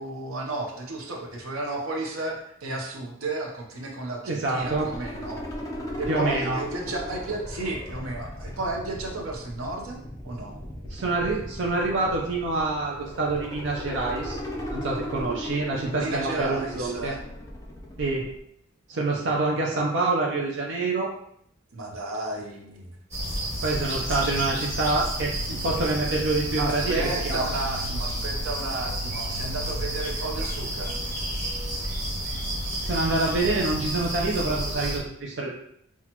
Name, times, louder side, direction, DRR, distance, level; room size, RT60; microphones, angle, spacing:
voice 1, 0.0-5.4 6.0-10.0 10.2-10.6 15.8-17.2 21.7-22.9 26.6-31.0, right 2 dB, 85° right, 0 dB, 0.8 m, -33 dB
voice 2, 4.3-4.9 6.1-6.6 10.9-14.4 14.7-17.1 18.0-18.3 18.9-21.1 23.6-27.4 32.8-35.5, right 3 dB, 55° right, -2 dB, 0.5 m, -26 dB
sound 1, 4.6-18.4, equal, 15° left, 0.5 m, -37 dB
sound 2, 23.1-35.0, right 1 dB, 35° right, 1.4 m, -30 dB
5.8 x 2.4 x 2.9 m, 0.71 s
head